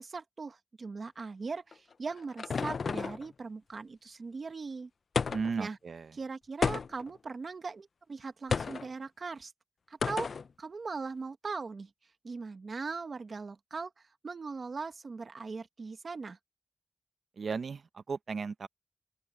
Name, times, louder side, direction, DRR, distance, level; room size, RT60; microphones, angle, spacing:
voice 1, 0.0-4.9 5.6-5.8 6.2-9.5 9.9-10.3 10.6-11.9 12.2-13.9 14.2-16.4, right 4 dB, 60° right, 1.4 m, -40 dB
sound 1, 1.7-3.3 5.2-5.6 6.6-7.2 8.5-8.9 10.0-10.5, left 5 dB, 80° left, 0.4 m, -32 dB
voice 2, 5.3-6.2 17.4-18.7, right 5 dB, 80° right, 0.8 m, -35 dB
open air
wide cardioid pair, 125°, 0 cm